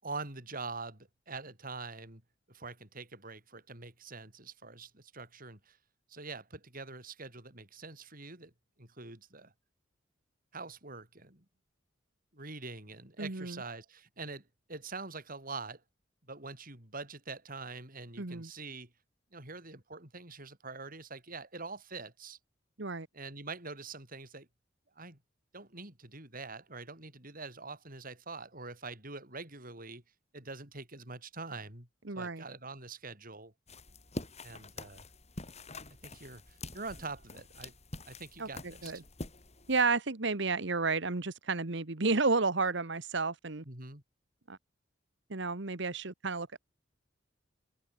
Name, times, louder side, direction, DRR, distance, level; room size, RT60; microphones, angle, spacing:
voice 1, 0.0-2.2 2.5-5.8 6.1-8.5 8.8-9.5 10.5-11.4 12.3-15.8 16.3-18.9 19.3-22.4 23.1-24.5 25.0-25.2 25.5-30.0 30.3-31.9 32.1-33.5 34.4-35.0 35.9-37.7 38.1-39.0 43.7-44.0, right 3 dB, 50° right, 7.4 m, -45 dB
voice 2, 13.2-13.6 18.2-18.5 22.8-23.1 32.0-32.4 38.4-39.0 39.7-43.6 44.5-44.6 45.3-46.6, right 4 dB, 65° right, 1.5 m, -32 dB
sound 1, 33.7-39.8, left 2 dB, 35° left, 7.9 m, -46 dB
open air
head